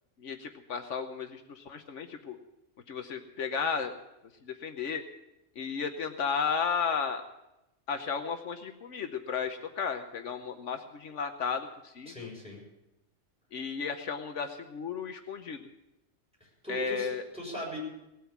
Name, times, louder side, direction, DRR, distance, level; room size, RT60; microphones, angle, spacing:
voice 1, 0.2-2.4 2.9-3.9 4.4-5.0 5.6-7.2 7.9-12.3 13.5-15.7 16.7-17.2, left 6 dB, 75° left, 7 dB, 1.3 m, -34 dB
voice 2, 12.1-12.6 16.4-17.8, right 1 dB, 5° right, -3 dB, 6.6 m, -40 dB
18.5 x 9.1 x 7.1 m, 0.90 s
omnidirectional pair, 1.3 m